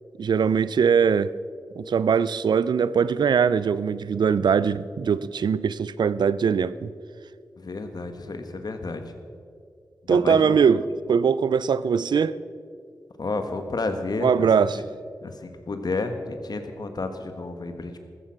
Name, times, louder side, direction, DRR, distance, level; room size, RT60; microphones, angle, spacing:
voice 1, 0.2-1.3 1.8-6.9 10.1-10.8 11.1-12.4 14.2-14.8, right 6 dB, 80° right, 17 dB, 0.5 m, -21 dB
voice 2, 7.6-9.0 10.1-10.6 13.2-14.5 15.2-18.0, left 3 dB, 65° left, 7 dB, 1.7 m, -31 dB
14.5 x 14.0 x 6.0 m, 2.2 s
cardioid pair, 45°, 7 cm